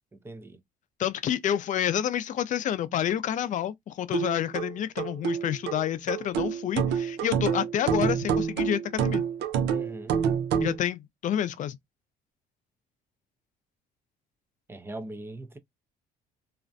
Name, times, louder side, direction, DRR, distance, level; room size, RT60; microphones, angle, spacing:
voice 1, 0.1-0.6 9.7-10.2 14.7-15.6, right 1 dB, 15° right, 0.5 m, -40 dB
voice 2, 1.0-9.2 10.6-11.8, left 10 dB, 50° left, 0.4 m, -29 dB
sound 1, 4.1-10.8, right 7 dB, 80° right, 0.5 m, -28 dB
2.4 x 2.0 x 2.5 m
cardioid pair, 110°, 17 cm